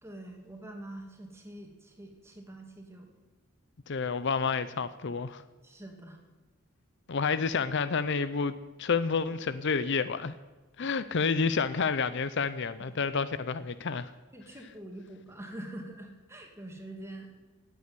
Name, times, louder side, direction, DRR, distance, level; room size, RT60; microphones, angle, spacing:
voice 1, 0.0-3.1 5.6-6.2 12.9-13.0 14.3-17.3, right 1 dB, 10° right, 2.5 m, -45 dB
voice 2, 3.9-5.4 7.1-10.3 10.8-14.1, left 5 dB, 55° left, 0.6 m, -29 dB
16.5 x 8.5 x 9.7 m
head